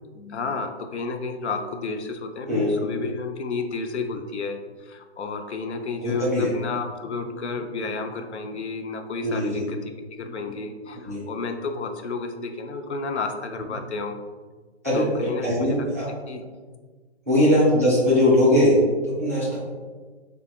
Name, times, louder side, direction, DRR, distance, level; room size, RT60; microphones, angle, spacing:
voice 1, 0.1-9.9 10.2-14.2 14.9-15.9 16.3-16.4 17.3-17.7, left 4 dB, 75° left, 5 dB, 0.5 m, -31 dB
voice 2, 2.5-2.8 6.0-6.5 9.2-9.5 11.0-11.2 14.8-16.1 17.3-18.7 19.1-19.6, left 1 dB, 15° right, -10 dB, 0.4 m, -20 dB
3.1 x 2.0 x 3.1 m, 1.4 s
figure-of-eight pair, 145°, 34 cm